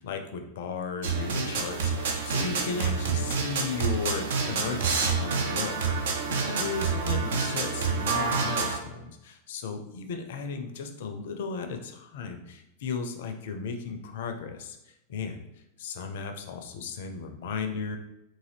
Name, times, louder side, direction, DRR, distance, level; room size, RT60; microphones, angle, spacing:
voice 1, 0.0-15.4 15.8-18.0, left 5 dB, 55° left, 6 dB, 0.4 m, -35 dB
sound 1, 1.0-8.8, right 5 dB, 60° right, 0.5 m, -28 dB
3.8 x 2.5 x 3.2 m, 0.88 s
figure-of-eight pair, 90°, 0 cm